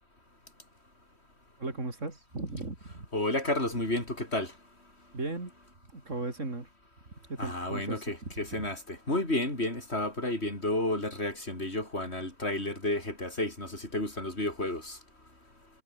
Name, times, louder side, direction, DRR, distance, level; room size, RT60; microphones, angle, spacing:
voice 1, 1.6-3.1 5.1-5.5 5.9-6.7 7.3-8.1 8.6-8.7, right 2 dB, 90° right, 4.4 m, -36 dB
voice 2, 3.1-4.5 7.4-15.0, left 1 dB, 60° left, 6.6 m, -31 dB
omnidirectional pair, 1.2 m